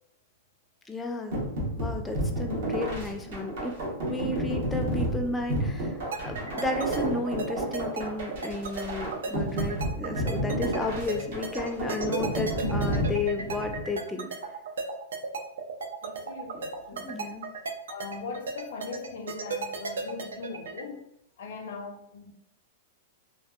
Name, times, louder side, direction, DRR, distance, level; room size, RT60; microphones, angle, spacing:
voice 1, 0.9-1.4 1.7-3.8 4.1-6.0 6.2-14.3 16.9-17.5, left 2 dB, 5° left, 0.3 m, -33 dB
sound 1, 1.3-13.9, right 1 dB, 65° right, 0.9 m, -31 dB
sound 2, 6.1-20.8, right 4 dB, 90° right, 0.4 m, -35 dB
voice 2, 16.0-17.3 17.9-21.1 21.4-22.3, left 4 dB, 70° left, 0.5 m, -40 dB
2.6 x 2.4 x 2.3 m
hypercardioid pair, 140°, 0 cm